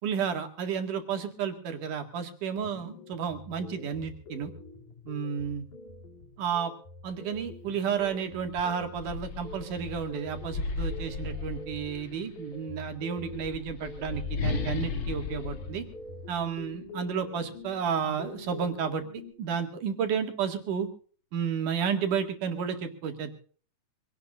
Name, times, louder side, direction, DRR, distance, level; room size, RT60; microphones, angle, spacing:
voice 1, 0.0-4.5 5.1-5.6 6.4-6.7 7.0-15.9 16.3-20.9 21.3-23.4, right 7 dB, 75° right, 6 dB, 3.6 m, -32 dB
sound 1, 2.5-19.3, left 2 dB, 70° left, 4.4 m, -46 dB
sound 2, 8.0-8.1 8.5-12.2 13.1-16.8, left 4 dB, 50° left, 2.6 m, -35 dB
25.0 x 17.5 x 2.5 m, 0.43 s
omnidirectional pair, 3.7 m